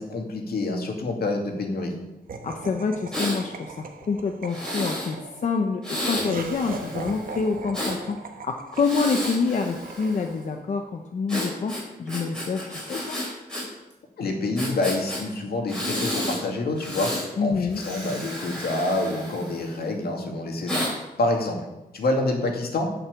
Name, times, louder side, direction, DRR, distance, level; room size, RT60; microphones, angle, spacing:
voice 1, 0.0-1.9 14.2-20.8 21.2-21.6 21.9-22.9, left 2 dB, 80° left, 2 dB, 2.4 m, -27 dB
Laughter, 2.3-10.7, right 4 dB, 65° right, 1.2 m, -39 dB
voice 2, 2.4-8.2 8.4-13.2 17.4-17.8, left 4 dB, 50° left, 4 dB, 0.8 m, -27 dB
Breathing, 3.1-3.4 4.5-5.1 5.8-8.0 8.7-10.4 11.3-13.6 13.9-14.0 14.6-15.2 15.7-16.4 16.8-17.3 17.7-19.9 20.7-20.9, left 1 dB, 5° left, 4.2 m, -32 dB
10.5 x 6.1 x 8.3 m, 0.97 s
wide cardioid pair, 160°, 16 cm